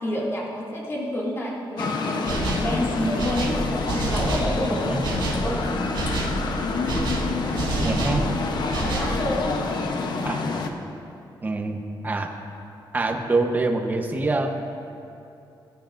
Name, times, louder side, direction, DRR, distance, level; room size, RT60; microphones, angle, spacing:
voice 1, 0.0-3.6 4.0-4.9 5.3-5.9 7.3-8.0 8.8-9.5, left 1 dB, 30° left, -5 dB, 2.3 m, -29 dB
sound 1, 1.8-10.7, left 4 dB, 55° left, 0.8 m, -27 dB
sound 2, 2.2-2.7 3.2-4.5 5.0-5.5 5.9-6.4 6.9-8.2 8.7-9.2, right 3 dB, 85° right, 3.4 m, -28 dB
voice 2, 4.7-5.0 7.8-8.2 10.2-10.4 11.4-12.3 12.9-14.5, right 3 dB, 20° right, 3 dB, 0.9 m, -25 dB
21.5 x 11.0 x 2.6 m, 2.7 s
wide cardioid pair, 170°, 9 cm